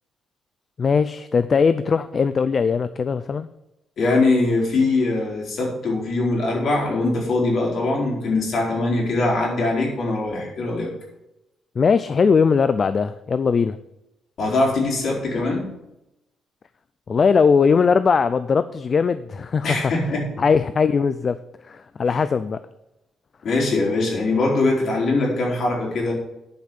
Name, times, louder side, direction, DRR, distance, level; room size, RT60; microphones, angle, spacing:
voice 1, 0.8-3.5 11.8-13.8 17.1-19.9 20.4-21.4 21.7-22.6, left 5 dB, 35° left, 13 dB, 0.4 m, -19 dB
voice 2, 4.0-10.9 14.4-15.7 19.6-20.3 22.1-22.2 23.4-26.1, left 2 dB, 55° left, -2 dB, 4.3 m, -22 dB
10.5 x 5.6 x 7.9 m, 0.90 s
cardioid pair, 145°, 0 cm